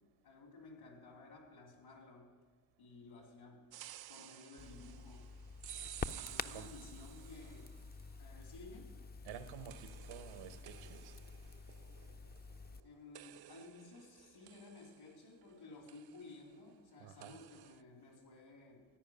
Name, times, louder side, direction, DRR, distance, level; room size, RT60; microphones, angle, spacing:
voice 1, 0.2-2.3 2.8-3.7 4.1-5.3 6.1-7.7 8.2-8.9 12.8-18.9, left 3 dB, 75° left, 0 dB, 3.8 m, -55 dB
sound 1, 3.7-7.9 9.3-12.8 13.1-15.5 15.9-16.4 17.2-17.8, right 12 dB, 55° right, 0.5 m, -54 dB
Crackle, 4.6-12.8, left 5 dB, 20° left, 0.4 m, -48 dB
voice 2, 9.2-11.1 17.0-17.4, right 9 dB, 85° right, 11 dB, 1.0 m, -51 dB
14.5 x 5.0 x 9.4 m, 1.5 s
supercardioid pair, 50°, 48 cm